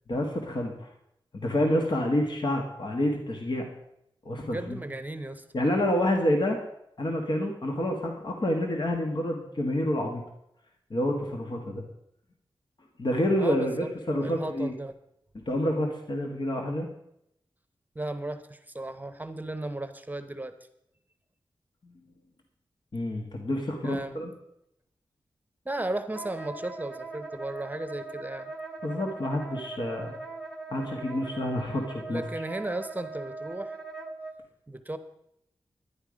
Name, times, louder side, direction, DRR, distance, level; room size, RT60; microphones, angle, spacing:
voice 1, 0.1-0.9 1.3-3.6 4.3-4.8 5.5-6.6 7.0-10.2 10.9-11.8 13.0-14.7 15.5-16.9 21.8-22.1 22.9-24.3 28.8-30.1 30.7-32.2, left 1 dB, 55° left, 2 dB, 1.7 m, -28 dB
voice 2, 4.4-5.4 13.4-14.9 17.9-20.6 23.8-24.2 25.6-28.5 32.1-33.8 34.7-35.0, right 2 dB, 20° right, 10 dB, 0.9 m, -35 dB
Wind instrument woodwind instrument, 26.1-34.3, right 3 dB, 5° left, 1.4 m, -40 dB
11.5 x 10.0 x 5.1 m, 0.78 s
wide cardioid pair, 80°, 9 cm